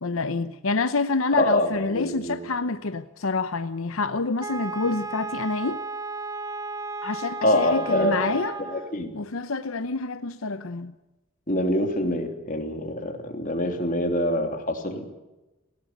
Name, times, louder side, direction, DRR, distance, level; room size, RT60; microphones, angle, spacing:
voice 1, 0.0-5.8 7.0-8.6 9.1-10.9, left 3 dB, 85° left, 0.8 m, -27 dB
voice 2, 1.3-2.4 7.4-8.3 8.7-9.1 11.5-15.1, left 1 dB, 40° left, 3.1 m, -25 dB
Wind instrument woodwind instrument, 4.4-9.0, right 3 dB, 20° right, 1.1 m, -34 dB
19.0 x 17.5 x 8.0 m
head